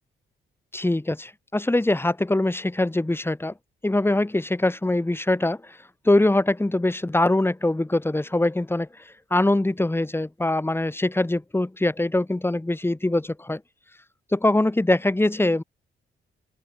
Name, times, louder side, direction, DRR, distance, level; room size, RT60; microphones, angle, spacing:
voice 1, 0.7-3.5 3.8-5.8 6.0-13.6 14.3-15.6, left 2 dB, 10° left, 3.2 m, -23 dB
open air
cardioid pair, 95°, 20 cm